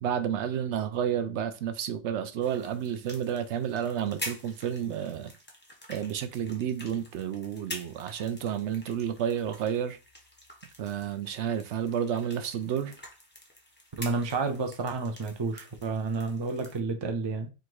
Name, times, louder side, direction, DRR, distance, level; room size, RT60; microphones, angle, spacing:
voice 1, 0.0-5.3 5.9-10.0 10.8-13.0, right 9 dB, 75° right, 0.9 m, -31 dB
sound 1, 2.4-16.8, left 1 dB, 10° left, 0.8 m, -46 dB
voice 2, 14.0-17.5, right 3 dB, 30° right, 0.5 m, -30 dB
3.7 x 2.6 x 4.6 m
omnidirectional pair, 1.2 m